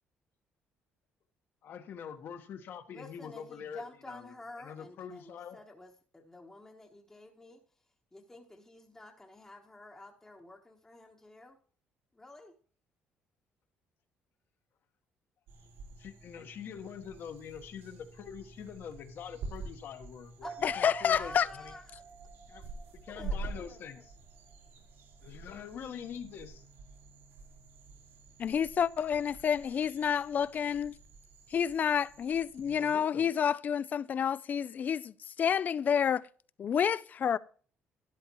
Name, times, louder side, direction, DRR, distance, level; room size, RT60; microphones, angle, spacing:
voice 1, 1.6-5.6 16.0-21.7 22.5-22.7 23.0-24.2 25.2-26.7 32.6-33.3, left 7 dB, 60° left, 1.3 m, -45 dB
voice 2, 2.9-7.6 8.1-11.6 12.1-12.5 20.4-22.0 23.2-24.0, left 2 dB, 10° left, 1.1 m, -50 dB
sound 1, 15.5-32.9, right 3 dB, 85° right, 4.2 m, -47 dB
sound 2, 20.4-24.1 24.5-24.6, right 5 dB, 30° right, 1.5 m, -48 dB
voice 3, 20.6-21.5 28.4-31.0 31.5-36.2 36.6-37.4, left 8 dB, 45° left, 0.4 m, -29 dB
12.5 x 10.5 x 3.0 m
cardioid pair, 110°, 4 cm